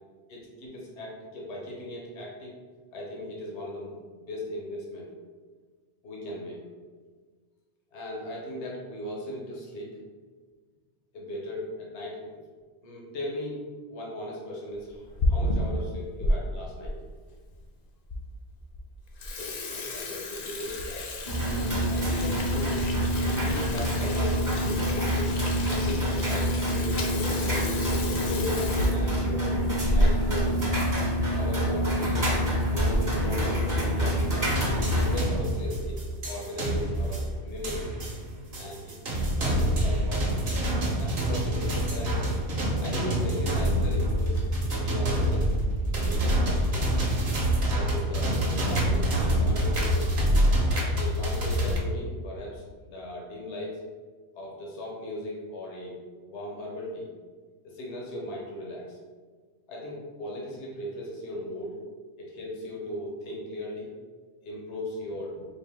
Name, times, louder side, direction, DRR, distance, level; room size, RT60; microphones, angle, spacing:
voice 1, 0.3-2.5 2.9-5.1 6.0-6.7 7.9-10.0 11.1-12.4 12.8-13.6 13.9-17.0 19.7-20.8 21.4-22.9 23.2-27.7 28.1-29.6 29.9-30.6 31.3-34.3 34.8-37.9 38.6-39.0 39.3-40.5 41.0-42.4 42.8-45.5 46.0-46.8 47.7-50.3 51.0-53.8 54.3-56.0 56.2-57.1 57.6-59.0 59.7-61.8 62.2-63.9 64.4-65.5, left 1 dB, 75° left, -3 dB, 1.2 m, -38 dB
Water tap faucet / Sink (filling or washing), 14.9-16.3 16.8-16.9 17.6-17.7 18.1-18.2 18.6-18.8 19.1-30.5 30.8-30.9 31.1-31.3 32.1-32.3 32.7-33.2, left 1 dB, 55° left, 0.5 m, -31 dB
sound 1, 21.2-35.2, equal, 20° right, 0.7 m, -27 dB
sound 2, 34.5-51.8, equal, 50° right, 1.0 m, -26 dB
4.4 x 2.6 x 3.4 m, 1.5 s
omnidirectional pair, 1.2 m